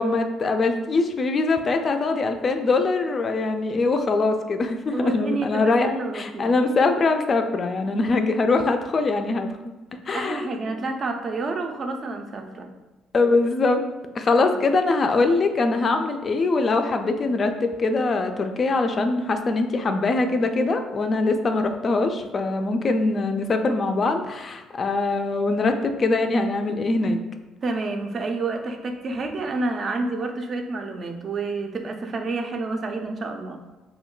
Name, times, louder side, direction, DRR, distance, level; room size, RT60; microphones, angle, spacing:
voice 1, 0.0-9.5 10.1-10.5 13.1-13.8 14.1-27.2, left 3 dB, 40° left, 6 dB, 0.3 m, -22 dB
voice 2, 4.9-6.5 10.1-12.7 27.6-33.6, right 3 dB, 45° right, 4 dB, 0.4 m, -29 dB
2.2 x 2.2 x 3.7 m, 1.1 s
supercardioid pair, 85°, 0 cm